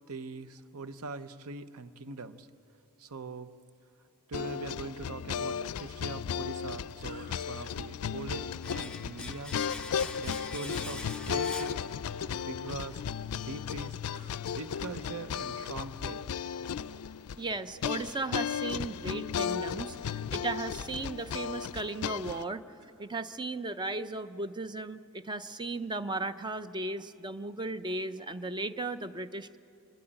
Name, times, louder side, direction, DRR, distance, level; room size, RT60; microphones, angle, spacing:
voice 1, 0.1-2.5 3.0-3.5 4.3-9.5 10.2-11.8 12.4-13.0 13.3-14.0 14.5-16.3, right 3 dB, 75° right, 12 dB, 0.8 m, -42 dB
sound 1, 4.3-22.4, left 7 dB, 75° left, 0.4 m, -35 dB
sound 2, 7.0-8.2 10.9-11.4 14.1-15.1 15.4-15.8 16.6-16.7 22.2-23.1, right 1 dB, 50° right, 2.7 m, -54 dB
Domestic sounds home sounds, 8.6-12.5 12.7-12.9, left 2 dB, 5° left, 0.8 m, -44 dB
voice 2, 17.4-22.6 23.0-29.6, right 2 dB, 20° right, 11 dB, 0.5 m, -36 dB
27.5 x 12.5 x 8.9 m, 2.6 s
head